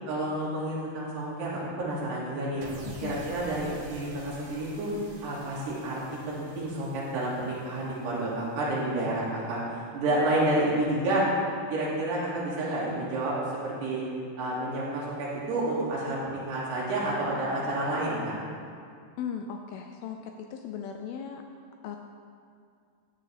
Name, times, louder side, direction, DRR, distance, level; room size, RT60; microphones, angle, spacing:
voice 1, 0.1-2.7 3.0-4.9 5.2-6.0 6.3-11.3 11.7-13.4 13.6-14.0 14.4-18.3, right 1 dB, 80° right, -7 dB, 4.6 m, -29 dB
sound 1, 2.6-8.9, right 1 dB, 55° right, 1.6 m, -47 dB
voice 2, 2.9-3.3 19.2-21.4 21.8-22.0, left 7 dB, 80° left, 4 dB, 2.2 m, -37 dB
14.0 x 9.7 x 3.5 m, 2.3 s
omnidirectional pair, 4.8 m